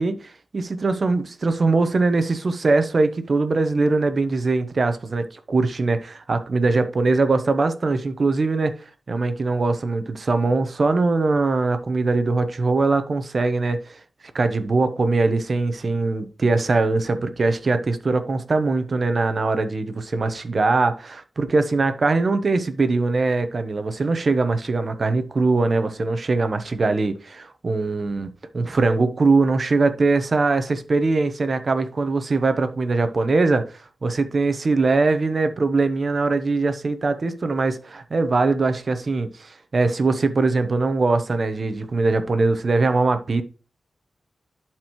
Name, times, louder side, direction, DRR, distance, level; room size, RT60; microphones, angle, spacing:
voice 1, 0.0-8.8 9.1-14.0 14.3-33.6 34.0-43.4, right 3 dB, 45° right, 0.9 m, -21 dB
11.0 x 4.4 x 3.0 m
wide cardioid pair, 135°, 0 cm